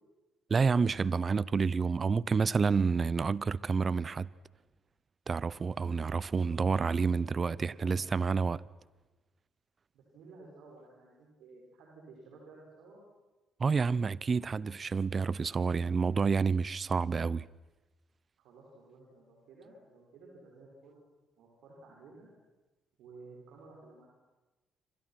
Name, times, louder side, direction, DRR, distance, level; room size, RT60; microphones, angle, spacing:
voice 1, 0.5-4.3 5.3-8.6 13.6-17.4, right 5 dB, 40° right, 0.8 m, -29 dB
voice 2, 6.1-6.8 7.2-7.3 7.7-8.1 9.9-13.0 18.4-21.0 21.4-22.3 23.0-24.1, right 3 dB, 75° right, 6.4 m, -54 dB
28.5 x 25.5 x 6.1 m
hypercardioid pair, 55°, 0 cm